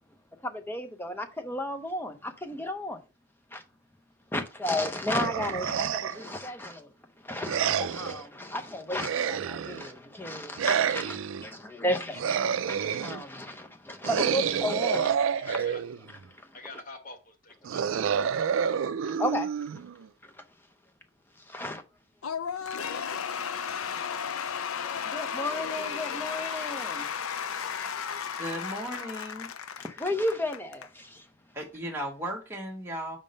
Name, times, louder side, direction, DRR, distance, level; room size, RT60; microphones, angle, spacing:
voice 1, 0.4-3.0 3.5-3.6 4.3-15.6 16.3-16.6 19.0-19.5 20.2-20.4 21.4-21.8 25.0-27.1 27.8-27.9 29.8-31.3, left 1 dB, 10° left, 0.7 m, -33 dB
sound 1, 5.2-6.3 7.5-8.2 9.0-9.9 10.6-11.5 12.1-13.2 14.0-16.1 17.6-20.1, right 7 dB, 70° right, 0.4 m, -28 dB
voice 2, 11.2-11.6 14.9-15.1 15.3-15.8 16.5-18.9, left 3 dB, 40° left, 1.2 m, -48 dB
Cheering / Applause / Crowd, 22.2-30.9, left 7 dB, 85° left, 0.6 m, -34 dB
voice 3, 28.4-29.5 31.5-33.2, equal, 10° right, 1.2 m, -36 dB
5.2 x 3.7 x 5.2 m
head